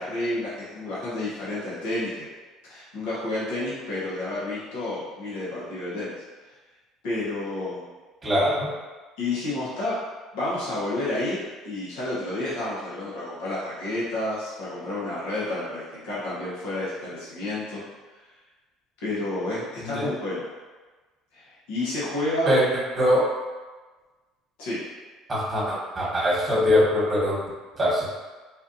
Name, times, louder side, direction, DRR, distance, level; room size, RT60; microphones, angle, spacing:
voice 1, 0.0-2.3 2.6-6.1 7.0-7.9 9.2-10.0 10.3-11.4 11.6-17.8 19.0-20.5 21.3-22.5 24.6-24.8, left 2 dB, 85° left, -8 dB, 1.2 m, -30 dB
voice 2, 8.2-8.7 19.8-20.1 22.5-22.7 23.0-23.3 25.3-28.1, equal, 25° right, -5 dB, 1.3 m, -22 dB
4.2 x 2.6 x 2.7 m, 1.3 s
supercardioid pair, 100°, 0 cm